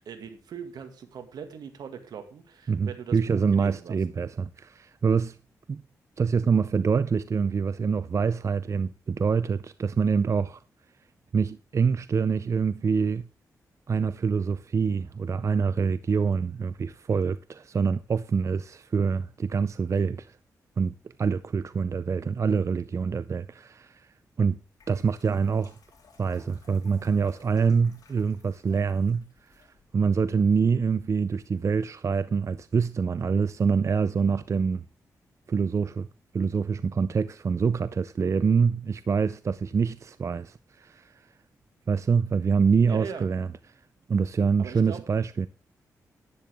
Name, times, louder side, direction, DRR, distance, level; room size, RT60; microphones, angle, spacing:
voice 1, 0.0-4.0 42.9-43.3 44.6-45.0, right 7 dB, 80° right, 1.9 m, -40 dB
voice 2, 2.7-5.4 5.7-5.8 6.2-10.6 11.3-13.3 13.9-20.4 20.8-24.1 24.4-24.6 24.9-25.7 26.2-29.7 29.9-34.8 35.5-36.1 36.3-41.1 41.9-43.5 44.1-45.5, right 5 dB, 45° right, 0.5 m, -25 dB
sound 1, 24.5-31.5, left 5 dB, 65° left, 3.8 m, -61 dB
11.0 x 10.0 x 3.5 m
cardioid pair, 60°, 7 cm